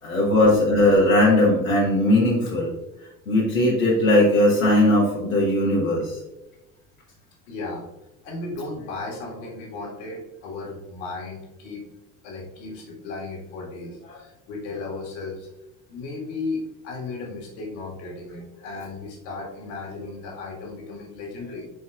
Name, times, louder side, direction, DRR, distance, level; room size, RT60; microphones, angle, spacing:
voice 1, 0.0-2.7 3.3-6.2, left 1 dB, 75° left, -5 dB, 1.6 m, -19 dB
voice 2, 7.5-7.9 8.2-11.8 12.2-15.5 15.9-21.6, left 3 dB, 55° left, -1 dB, 2.0 m, -35 dB
10.5 x 4.3 x 2.5 m, 0.99 s
figure-of-eight pair, 65°, 42 cm